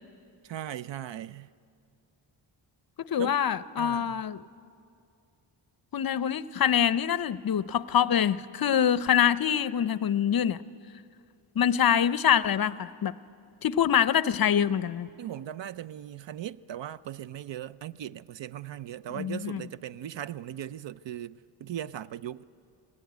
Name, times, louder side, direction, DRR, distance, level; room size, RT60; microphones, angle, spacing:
voice 1, 0.4-1.5 3.2-3.4 3.8-4.2 15.2-22.4, right 11 dB, 60° right, 0.6 m, -38 dB
voice 2, 3.1-4.4 5.9-10.6 11.6-13.1 13.6-15.1 19.2-19.6, left 9 dB, 45° left, 0.6 m, -25 dB
19.5 x 19.5 x 9.3 m
cardioid pair, 75°, 50 cm